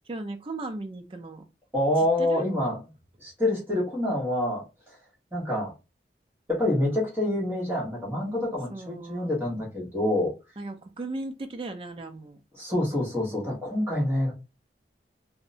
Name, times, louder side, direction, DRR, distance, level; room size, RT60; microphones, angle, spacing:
voice 1, 0.1-1.4 2.2-2.5 8.7-9.5 10.6-12.4, right 2 dB, 30° right, 0.4 m, -37 dB
voice 2, 1.7-2.8 3.2-4.9 5.3-5.7 6.5-10.3 12.5-14.3, left 1 dB, 10° right, 1.0 m, -27 dB
2.6 x 2.0 x 2.6 m
head